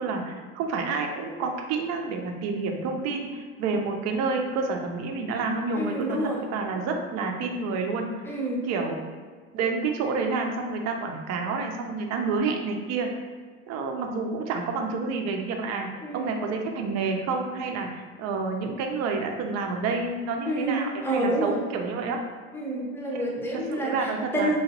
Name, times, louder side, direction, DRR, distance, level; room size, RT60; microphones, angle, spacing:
voice 1, 0.0-8.1 8.7-9.0 9.5-13.1 13.7-15.9 16.1-22.2 23.2-24.5, right 4 dB, 50° right, 3 dB, 0.6 m, -29 dB
voice 2, 5.7-6.4 8.3-8.7 16.0-16.3 20.5-21.5 22.5-24.6, right 1 dB, 5° left, -3 dB, 0.7 m, -28 dB
3.1 x 2.8 x 2.9 m, 1.5 s
supercardioid pair, 105°, 34 cm